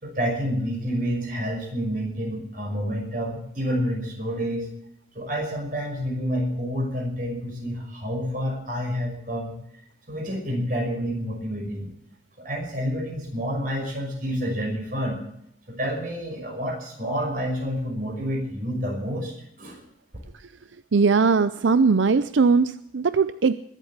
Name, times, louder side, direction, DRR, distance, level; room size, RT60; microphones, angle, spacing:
voice 1, 0.0-4.7 5.1-9.6 10.1-11.9 12.4-15.2 15.7-19.3 19.6-19.8, equal, 50° right, 1 dB, 5.8 m, -28 dB
voice 2, 20.9-23.5, right 4 dB, 90° right, 13 dB, 0.5 m, -20 dB
21.0 x 8.2 x 7.3 m, 0.75 s
head